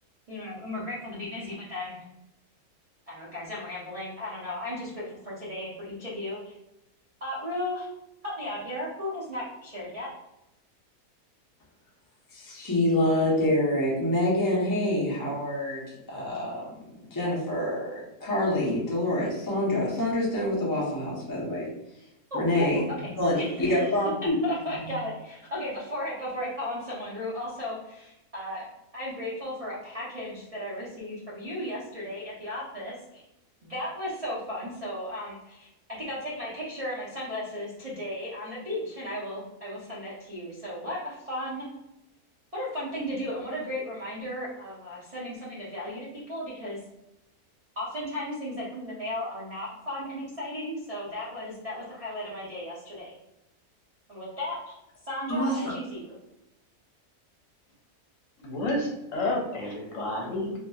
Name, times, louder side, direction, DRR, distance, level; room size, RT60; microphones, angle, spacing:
voice 1, 0.3-2.0 3.1-6.5 7.2-7.9 8.2-10.1 22.3-23.1 23.3-28.6 28.9-33.2 33.6-35.7 36.1-41.7 42.5-46.8 47.8-53.1 54.1-54.7 55.0-56.1, left 1 dB, 65° right, -7 dB, 0.3 m, -35 dB
voice 2, 12.3-21.7 22.3-22.8 23.2-24.4 55.3-55.6, left 1 dB, 35° left, -5 dB, 0.3 m, -26 dB
voice 3, 58.4-60.5, left 1 dB, 65° left, -1 dB, 1.0 m, -30 dB
2.7 x 2.5 x 2.3 m, 0.90 s
omnidirectional pair, 1.6 m